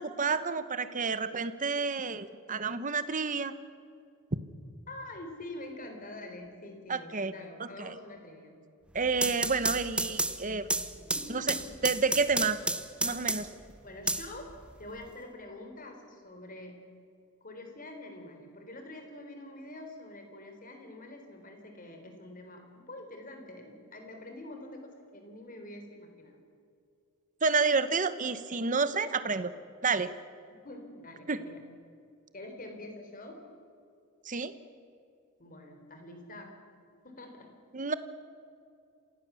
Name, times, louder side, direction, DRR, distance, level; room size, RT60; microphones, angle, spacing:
voice 1, 0.0-3.5 6.9-7.3 7.6-7.9 8.9-10.7 11.3-11.5 11.8-12.6 13.0-13.5 27.4-29.5 29.8-30.1 31.3-31.4 34.2-34.5 37.7-37.9, right 4 dB, 35° right, 12 dB, 1.1 m, -29 dB
voice 2, 4.9-8.5 10.2-10.7 11.1-11.7 13.8-14.5 14.8-16.9 17.4-26.4 30.6-31.6 32.3-33.4 35.4-36.6 37.0-37.5, left 1 dB, 40° left, 4 dB, 3.9 m, -46 dB
sound 1, 9.0-13.6 14.1-15.0, right 2 dB, 5° right, 0.8 m, -32 dB
27.0 x 16.5 x 7.1 m, 2.5 s
head